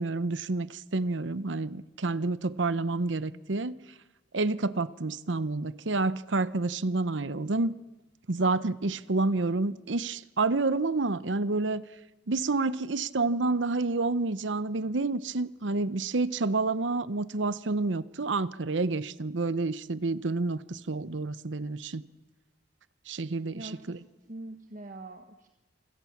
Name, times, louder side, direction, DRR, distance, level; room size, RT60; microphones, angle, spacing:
voice 1, 0.0-3.8 4.3-7.7 8.3-11.8 12.3-22.0 23.1-24.0, right 3 dB, 85° right, 0.9 m, -29 dB
voice 2, 23.5-25.5, right 2 dB, 45° right, 1.4 m, -44 dB
27.5 x 26.0 x 7.3 m
head